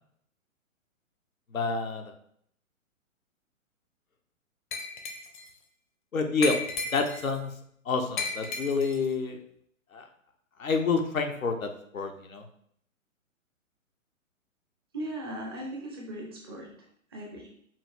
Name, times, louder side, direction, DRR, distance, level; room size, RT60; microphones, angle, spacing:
voice 1, 1.5-2.0 6.1-6.6 6.9-7.5 7.9-9.4 9.9-10.0 10.6-12.4, left 4 dB, 75° left, 4 dB, 0.9 m, -28 dB
Glass, 4.7-5.5 6.4-7.4 8.2-9.1, left 4 dB, 35° left, 0.7 m, -34 dB
voice 2, 14.9-16.7 17.1-17.5, right 1 dB, 20° right, 0 dB, 0.5 m, -38 dB
5.6 x 2.4 x 3.4 m, 0.66 s
figure-of-eight pair, 125°, 41 cm